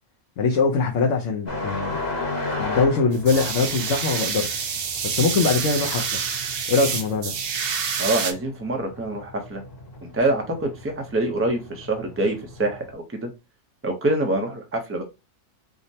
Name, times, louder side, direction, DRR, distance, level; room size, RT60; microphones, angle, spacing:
voice 1, 0.4-2.0 2.6-4.5 5.0-6.2 6.7-7.3, left 4 dB, 70° left, 1.0 m, -22 dB
sound 1, 1.5-12.9, left 2 dB, 35° left, 1.1 m, -35 dB
sound 2, 3.1-8.3, right 6 dB, 60° right, 0.7 m, -27 dB
voice 2, 8.0-9.6 10.0-13.3 13.8-15.0, right 2 dB, 15° right, 0.5 m, -25 dB
4.9 x 2.1 x 2.7 m
omnidirectional pair, 1.3 m